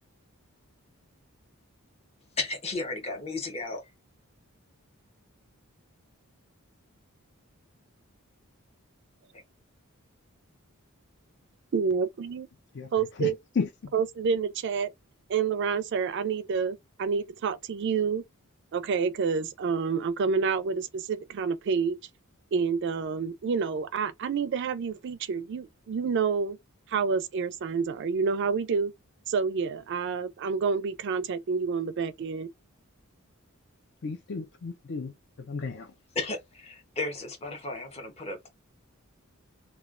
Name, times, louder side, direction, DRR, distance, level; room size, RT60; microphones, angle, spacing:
voice 1, 2.4-3.9 36.1-38.5, left 3 dB, 30° left, 0.9 m, -34 dB
voice 2, 11.7-12.5 12.9-13.3 13.9-14.9 15.3-18.2 18.7-22.0 22.5-26.6 26.9-28.9 29.3-32.5, right 5 dB, 55° right, 0.4 m, -28 dB
voice 3, 12.7-13.9 34.0-35.1 35.5-35.9, left 4 dB, 55° left, 0.5 m, -33 dB
3.1 x 2.3 x 2.4 m
head